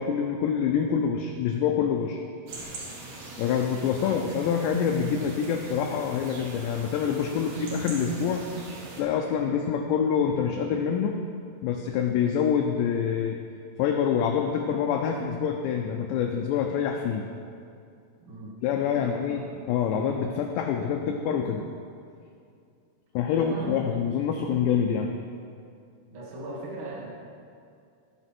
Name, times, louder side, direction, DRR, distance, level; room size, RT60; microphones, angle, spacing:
voice 1, 0.0-2.2 3.4-8.5 8.9-11.3 11.6-13.4 13.8-17.2 18.6-19.4 19.7-21.6 23.2-25.1, left 7 dB, 80° left, 3 dB, 2.6 m, -26 dB
sound 1, 2.5-9.0, right 2 dB, 65° right, 1.7 m, -41 dB
voice 2, 18.2-18.6 18.9-19.4 23.3-24.0 26.1-27.1, right 2 dB, 45° right, -5 dB, 1.8 m, -39 dB
17.0 x 6.7 x 4.3 m, 2.4 s
omnidirectional pair, 5.4 m